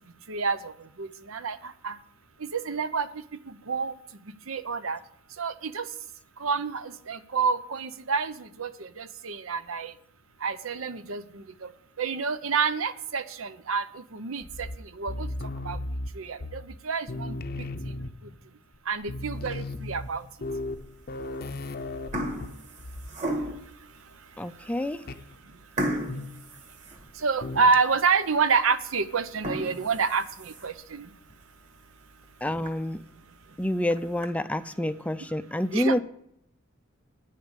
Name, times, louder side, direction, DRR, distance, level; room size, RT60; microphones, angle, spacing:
voice 1, 0.3-0.7 1.0-1.9 2.4-3.1 3.7-3.9 4.5-5.0 5.4-5.8 6.4-9.9 10.4-11.4 12.0-13.8 14.1-14.7 15.0-15.3 15.6-15.8 16.2-17.3 18.9-20.2 27.2-31.1 35.7-36.0, right 5 dB, 80° right, 13 dB, 0.7 m, -28 dB
sound 1, 14.4-16.8 17.1-18.4 18.7-18.8 19.0-23.1 23.4-23.7 25.1-25.3 26.1-26.5 27.4-27.8, left 2 dB, 50° left, 0.6 m, -36 dB
sound 2, 19.3-19.8 20.4-20.5 21.4-21.6 21.9-23.8 24.4-24.5 24.8-25.0 25.8-27.5 27.9-28.0 28.5-28.6 29.2-30.9 31.3-31.4 31.8-31.9 32.2-32.3 32.6-32.7 33.7-34.3, equal, 35° right, 1.9 m, -34 dB
voice 2, 24.4-25.0 32.4-33.0 33.6-36.0, left 1 dB, 5° left, 11 dB, 0.4 m, -28 dB
9.7 x 6.7 x 8.1 m, 0.70 s
head